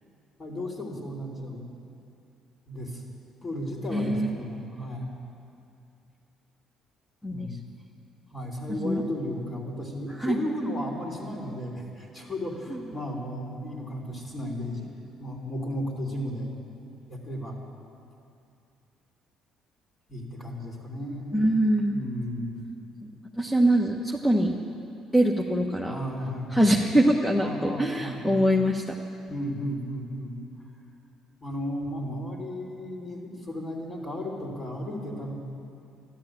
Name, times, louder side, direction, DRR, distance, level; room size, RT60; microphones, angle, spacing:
voice 1, 0.4-1.8 2.7-3.0 3.4-5.1 7.3-7.6 8.3-14.9 15.2-16.5 17.1-17.6 20.1-21.5 21.9-22.6 25.8-26.9 27.3-28.5 29.3-30.4 31.4-35.3, equal, 35° left, -2 dB, 3.3 m, -34 dB
voice 2, 3.9-4.3 7.2-7.5 8.8-9.0 10.2-10.4 21.3-21.9 23.0-23.1 23.4-24.6 25.1-25.9 26.5-28.9, right 1 dB, 10° left, 0 dB, 1.2 m, -23 dB
13.5 x 12.0 x 8.8 m, 2.6 s
supercardioid pair, 75°, 0 cm